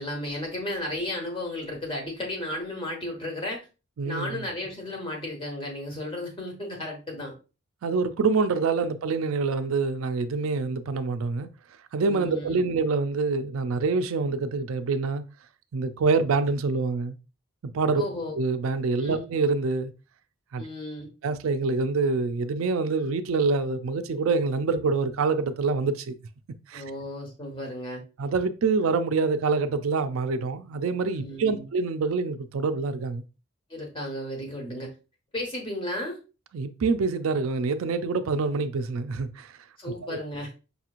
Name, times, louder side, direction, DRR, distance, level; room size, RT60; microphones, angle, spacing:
voice 1, 0.0-3.7 4.0-7.3 12.0-12.6 18.0-18.4 19.0-19.2 20.6-21.1 26.7-28.0 31.1-31.7 33.7-34.9 35.3-36.2 39.8-40.5, left 1 dB, 25° left, 1.2 m, -34 dB
voice 2, 4.0-4.5 7.8-11.5 11.9-15.2 15.7-17.2 17.7-18.0 18.3-19.9 20.5-20.6 21.2-26.2 26.7-26.8 28.2-33.2 36.5-39.5 40.1-40.2, right 4 dB, 80° right, 0.4 m, -26 dB
5.3 x 2.9 x 2.4 m
head